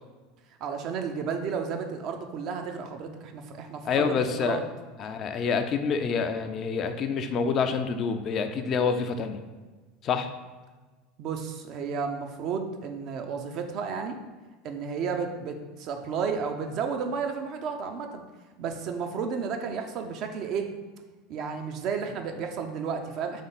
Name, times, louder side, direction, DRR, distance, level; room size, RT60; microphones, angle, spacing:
voice 1, 0.6-4.6 11.2-14.2 14.6-18.2 18.6-20.7 21.3-23.4, right 6 dB, 45° right, 5 dB, 0.5 m, -32 dB
voice 2, 3.8-4.6 5.0-9.4 10.0-10.3, left 5 dB, 40° left, 7 dB, 0.4 m, -27 dB
3.5 x 3.4 x 3.9 m, 1.3 s
figure-of-eight pair, 75°, 0 cm